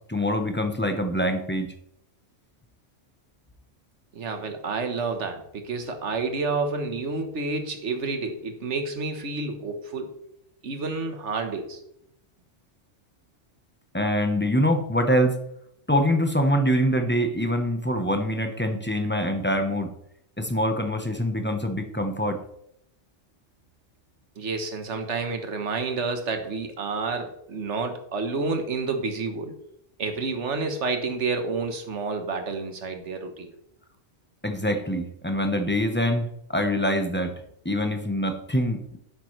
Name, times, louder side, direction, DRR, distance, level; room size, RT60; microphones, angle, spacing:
voice 1, 0.1-1.7 13.9-15.4 15.9-19.9 20.4-22.4 34.4-37.3 37.6-39.0, equal, 10° left, 5 dB, 0.9 m, -24 dB
voice 2, 4.1-10.2 10.6-11.8 24.4-29.6 30.0-33.5, right 4 dB, 70° right, 6 dB, 1.5 m, -29 dB
10.5 x 8.3 x 3.3 m, 0.76 s
omnidirectional pair, 1.3 m